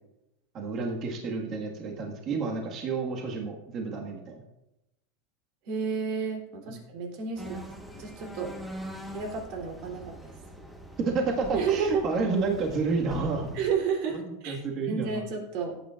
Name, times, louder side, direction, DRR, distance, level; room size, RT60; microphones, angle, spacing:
voice 1, 0.5-4.4 6.7-6.8 11.0-13.5 14.1-15.2, right 4 dB, 35° right, 1 dB, 1.7 m, -30 dB
voice 2, 5.6-7.6 7.9-8.5 9.1-10.3 11.5-12.0 13.5-14.6 14.9-15.7, right 6 dB, 55° right, 0 dB, 3.1 m, -31 dB
sound 1, 7.4-13.7, equal, 5° right, 1.2 m, -42 dB
17.5 x 8.9 x 2.5 m, 0.90 s
supercardioid pair, 145°, 0 cm